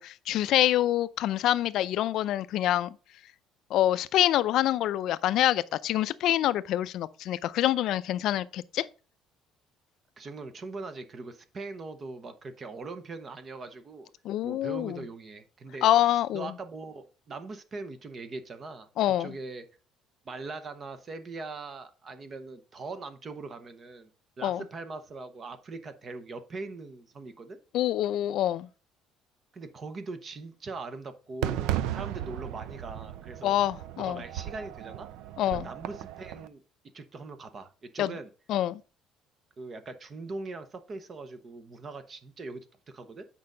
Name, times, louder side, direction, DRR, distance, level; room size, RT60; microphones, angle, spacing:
voice 1, 0.0-3.0 3.7-8.8 14.2-15.0 15.8-16.5 19.0-19.3 24.4-24.6 27.7-28.7 33.4-34.2 35.4-35.7 38.0-38.1 38.5-38.8, left 13 dB, 60° left, 0.5 m, -26 dB
voice 2, 10.2-14.1 14.4-19.6 20.2-24.1 24.4-27.6 29.5-33.6 34.0-35.1 35.5-36.6 36.9-38.3 39.6-43.2, right 3 dB, 30° right, 0.8 m, -41 dB
Fireworks, 31.4-36.5, right 12 dB, 85° right, 0.5 m, -35 dB
8.7 x 5.4 x 3.8 m
cardioid pair, 150°, 0 cm